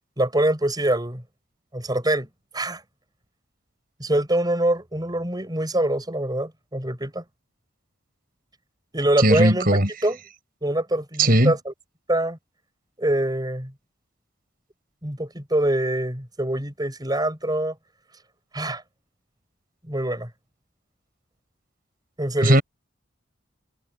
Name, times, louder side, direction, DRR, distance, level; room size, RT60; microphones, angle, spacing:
voice 1, 0.2-1.2 1.7-2.3 2.5-2.8 4.0-7.2 8.9-10.2 10.6-11.7 12.1-12.4 13.0-13.7 15.0-17.7 18.5-18.8 19.9-20.3 22.2-22.6, right 1 dB, 20° right, 6.0 m, -24 dB
voice 2, 9.2-9.9 11.2-11.5 22.4-22.6, right 1 dB, 45° right, 7.1 m, -17 dB
head